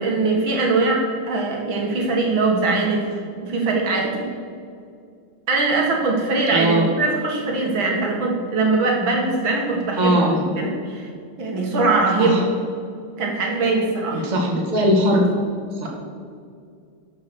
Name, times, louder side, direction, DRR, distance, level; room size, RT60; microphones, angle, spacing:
voice 1, 0.0-4.3 5.5-10.2 10.6-11.1 11.4-12.4 13.2-14.3, right 3 dB, 60° right, 0 dB, 2.5 m, -21 dB
voice 2, 6.5-6.8 10.0-10.4 12.2-12.4 14.1-15.2 15.8-15.9, equal, 20° right, -1 dB, 1.5 m, -19 dB
12.5 x 5.7 x 6.3 m, 2.3 s
omnidirectional pair, 2.4 m